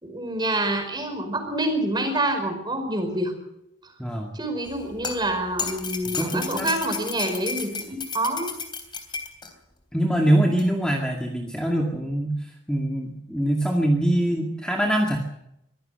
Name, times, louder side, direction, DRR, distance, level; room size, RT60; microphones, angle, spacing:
voice 1, 0.0-3.3 4.3-8.5, right 1 dB, 20° right, 5 dB, 5.0 m, -27 dB
voice 2, 4.0-4.4 6.1-6.7 9.9-15.2, right 1 dB, 5° left, 0 dB, 2.1 m, -23 dB
sound 1, 4.7-9.5 10.6-10.7, left 5 dB, 20° left, 3.3 m, -33 dB
24.0 x 16.5 x 6.7 m, 0.80 s
head